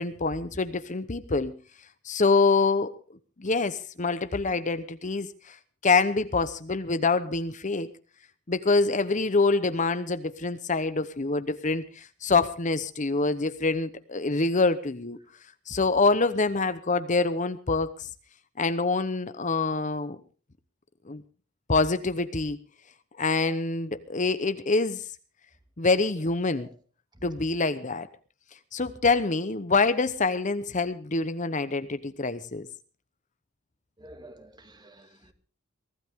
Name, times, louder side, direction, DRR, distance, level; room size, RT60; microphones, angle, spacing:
voice 1, 0.0-1.5 2.0-2.9 3.4-5.6 5.8-7.9 8.5-15.2 15.7-18.1 18.6-20.2 21.1-21.2 21.7-22.6 23.2-25.0 25.8-26.7 27.2-28.1 28.7-32.7, left 3 dB, 35° left, 12 dB, 0.9 m, -25 dB
voice 2, 34.0-35.3, right 1 dB, 20° right, 8 dB, 2.0 m, -50 dB
23.5 x 16.0 x 3.6 m, 0.37 s
head